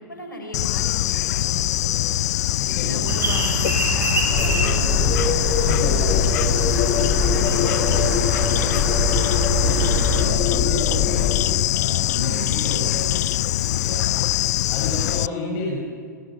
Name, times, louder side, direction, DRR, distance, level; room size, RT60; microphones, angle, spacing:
voice 1, 0.0-2.1 2.8-6.7 7.2-9.1 12.2-12.9 13.9-14.2, left 1 dB, 90° left, 2 dB, 5.4 m, -37 dB
Bird / Insect, 0.5-15.3, left 14 dB, 60° left, 0.4 m, -23 dB
voice 2, 2.6-3.1 5.6-6.3 7.6-8.0 9.5-13.3 13.7-14.1 14.7-15.8, left 3 dB, 45° left, -2 dB, 6.1 m, -31 dB
sound 1, 3.1-10.3, right 3 dB, 25° right, 6.5 m, -26 dB
sound 2, 4.3-11.5, left 7 dB, 30° left, 1.2 m, -23 dB
26.5 x 16.5 x 6.1 m, 2.1 s
hypercardioid pair, 110°, 10 cm